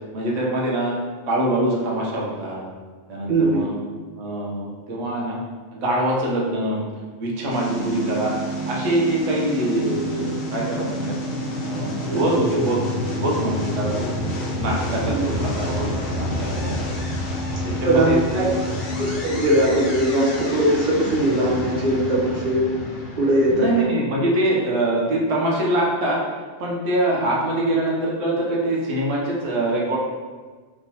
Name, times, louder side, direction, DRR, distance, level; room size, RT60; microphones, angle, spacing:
voice 1, 0.1-1.0 1.3-2.6 3.1-3.8 4.1-5.4 5.7-6.8 7.2-11.1 11.6-12.8 13.1-14.1 14.5-16.9 17.6-18.5 23.5-26.2 26.6-30.0, right 1 dB, 85° right, -3 dB, 1.1 m, -24 dB
voice 2, 3.3-3.6 12.1-12.2 15.1-15.2 17.8-18.5 19.0-22.6 23.2-23.7, right 1 dB, 45° right, -5 dB, 0.8 m, -20 dB
sound 1, 7.5-23.8, left 1 dB, 60° left, 0.8 m, -28 dB
3.4 x 3.0 x 2.7 m, 1.4 s
omnidirectional pair, 1.3 m